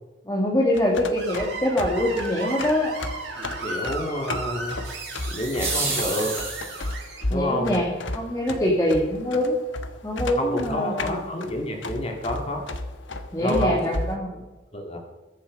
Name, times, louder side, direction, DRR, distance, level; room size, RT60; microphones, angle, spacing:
voice 1, 0.3-2.9 7.3-9.6 10.0-11.2 13.3-14.3, left 1 dB, 15° left, -3 dB, 2.0 m, -24 dB
sound 1, 0.7-14.2, left 2 dB, 80° left, 1.3 m, -34 dB
Screech, 1.1-7.2, right 3 dB, 65° right, 5.3 m, -35 dB
voice 2, 3.6-4.8 5.3-6.4 7.3-7.8 10.4-12.7 13.4-13.8 14.3-14.4 14.7-15.0, left 1 dB, 30° left, 2 dB, 2.2 m, -28 dB
sound 2, 4.8-7.0, right 3 dB, 15° right, 3.9 m, -30 dB
21.5 x 7.4 x 5.3 m, 1.1 s
head